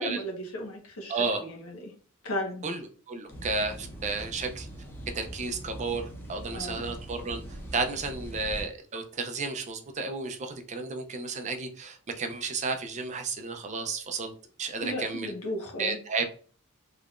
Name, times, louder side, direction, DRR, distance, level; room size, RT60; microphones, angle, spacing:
voice 1, 0.0-1.7 2.2-2.6 6.5-6.8 14.8-16.0, equal, 80° left, 1 dB, 1.2 m, -35 dB
voice 2, 1.1-1.4 2.6-2.8 3.1-4.7 5.1-14.3 14.6-15.3 15.8-16.3, right 4 dB, 35° right, 6 dB, 0.5 m, -32 dB
sound 1, 3.3-8.6, right 1 dB, 10° left, 0.9 m, -41 dB
3.6 x 3.3 x 2.4 m, 0.40 s
head